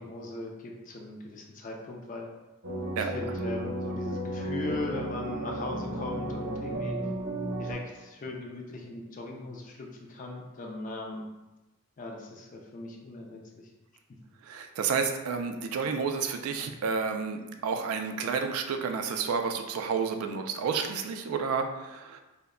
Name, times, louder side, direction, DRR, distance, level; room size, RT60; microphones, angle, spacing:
voice 1, 0.0-2.3 2.9-7.0 7.6-11.3 12.0-13.7, left 2 dB, 35° left, 1 dB, 0.3 m, -39 dB
sound 1, 2.6-7.7, right 1 dB, 50° right, 0.7 m, -33 dB
voice 2, 14.4-22.2, right 5 dB, 85° right, 9 dB, 0.3 m, -30 dB
2.1 x 2.1 x 3.5 m, 1.1 s
head